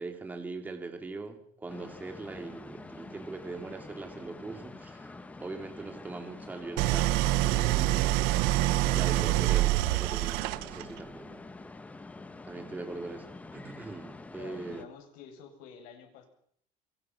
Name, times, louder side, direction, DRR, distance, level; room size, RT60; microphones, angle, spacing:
voice 1, 0.0-8.4 8.9-11.4 12.4-14.9, right 3 dB, 10° right, 6 dB, 2.6 m, -41 dB
sound 1, 1.7-14.9, left 3 dB, 10° left, 1.3 m, -46 dB
Idling, 6.8-11.0, right 17 dB, 75° right, 1.0 m, -26 dB
voice 2, 14.4-16.3, left 7 dB, 65° left, 5 dB, 7.9 m, -49 dB
28.0 x 24.0 x 5.9 m, 0.64 s
cardioid pair, 175°, 15 cm